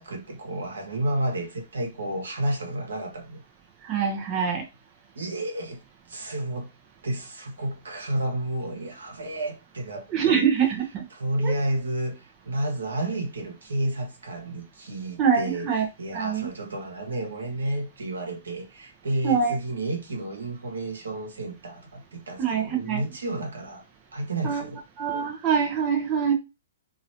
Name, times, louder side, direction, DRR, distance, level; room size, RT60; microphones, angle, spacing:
voice 1, 0.0-3.4 5.1-5.8 6.1-6.7 7.0-10.5 11.1-23.8 24.1-24.8, right 1 dB, 80° right, 1.2 m, -31 dB
voice 2, 3.8-4.6 10.1-11.0 11.4-11.5 15.2-15.9 16.1-16.5 19.2-19.5 22.4-23.0 24.4-24.7 25.0-26.3, right 7 dB, 30° right, 0.8 m, -24 dB
2.9 x 2.7 x 2.8 m
hypercardioid pair, 130°, 0 cm